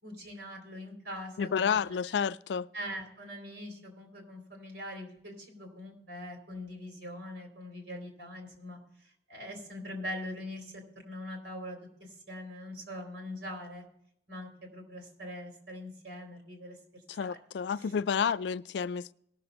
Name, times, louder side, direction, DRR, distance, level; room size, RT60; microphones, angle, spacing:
voice 1, 0.0-1.8 2.7-13.8 14.3-16.8 17.2-17.4 17.8-17.9 18.3-18.4, left 1 dB, 85° right, 3.9 m, -42 dB
voice 2, 1.4-2.7 17.1-19.1, left 7 dB, 70° left, 0.3 m, -30 dB
18.5 x 6.9 x 4.1 m
head